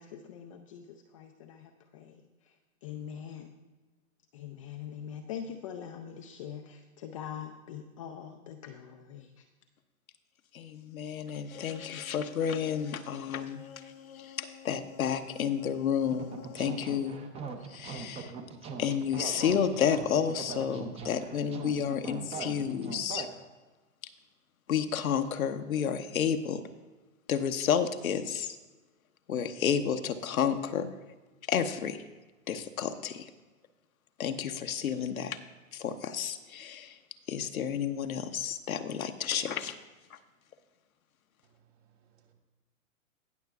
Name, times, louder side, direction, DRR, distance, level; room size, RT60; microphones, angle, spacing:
voice 1, 0.0-2.6 2.8-3.5 4.3-9.5, left 8 dB, 25° left, 4 dB, 0.3 m, -43 dB
voice 2, 10.5-17.3 17.6-18.3 18.8-23.3 24.7-26.6 27.3-28.6 29.3-30.9 31.4-32.0 32.5-33.3 34.2-35.4 35.7-37.0 37.3-39.8 40.1-40.2, left 8 dB, 80° left, 8 dB, 0.8 m, -31 dB
sound 1, 11.5-16.7, left 8 dB, 55° left, 0.8 m, -50 dB
sound 2, 16.0-23.3, right 5 dB, 15° right, 0.6 m, -41 dB
voice 3, 41.4-42.3, right 8 dB, 60° right, 0 dB, 2.7 m, -67 dB
19.0 x 6.5 x 2.3 m, 1.2 s
hypercardioid pair, 115°, 41 cm